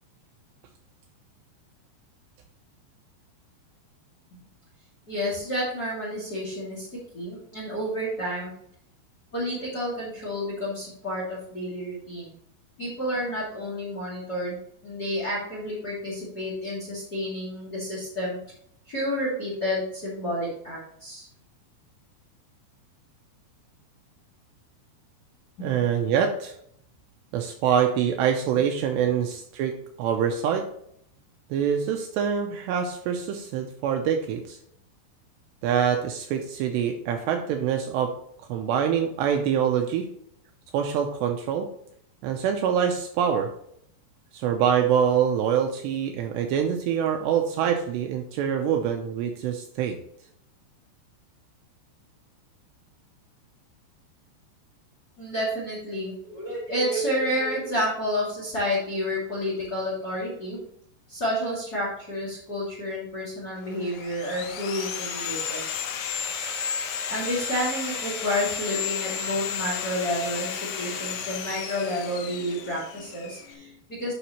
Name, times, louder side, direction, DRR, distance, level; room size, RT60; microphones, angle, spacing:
voice 1, 5.1-8.5 9.3-12.3 12.8-14.6 14.8-18.4 18.9-21.3 25.6-25.8 55.2-60.6 61.1-65.7 67.1-74.1, equal, 30° left, -6 dB, 1.9 m, -30 dB
voice 2, 25.6-26.5 27.3-30.7 31.5-34.6 35.6-38.1 38.5-40.1 40.7-41.7 42.2-43.5 44.3-50.0, right 8 dB, 80° right, 4 dB, 2.6 m, -25 dB
Sawing, 63.7-73.5, left 7 dB, 75° left, 3.2 m, -33 dB
10.0 x 5.8 x 3.0 m, 0.70 s
omnidirectional pair, 5.4 m